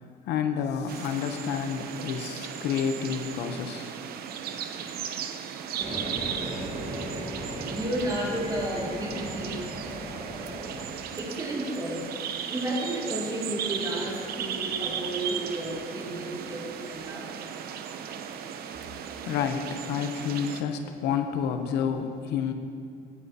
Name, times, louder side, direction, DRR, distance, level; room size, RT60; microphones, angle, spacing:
voice 1, 0.3-3.9 19.2-22.5, left 7 dB, 85° left, 7 dB, 0.8 m, -29 dB
sound 1, 0.9-20.6, right 8 dB, 65° right, 0.7 m, -36 dB
sound 2, 5.8-10.9, right 1 dB, 40° right, 2.3 m, -36 dB
voice 2, 7.7-9.6 11.1-12.0 12.5-17.3 17.9-18.0, right 1 dB, 20° right, -3 dB, 2.5 m, -32 dB
16.5 x 9.2 x 2.8 m, 2.4 s
cardioid pair, 110°, 17 cm